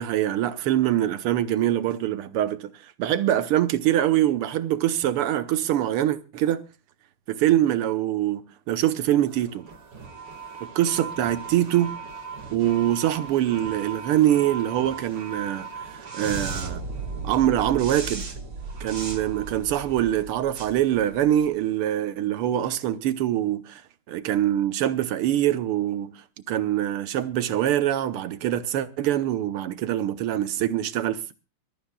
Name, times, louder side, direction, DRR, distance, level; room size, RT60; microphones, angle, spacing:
voice 1, 0.0-2.7 3.0-6.6 7.3-9.7 10.8-12.0 12.5-16.8 17.2-18.3 18.8-23.8 24.1-26.1 26.5-31.3, right 12 dB, 90° right, 1.9 m, -24 dB
factory explosion steam burst, 9.3-21.6, right 4 dB, 60° right, 2.7 m, -37 dB
25.0 x 13.0 x 2.3 m
omnidirectional pair, 2.4 m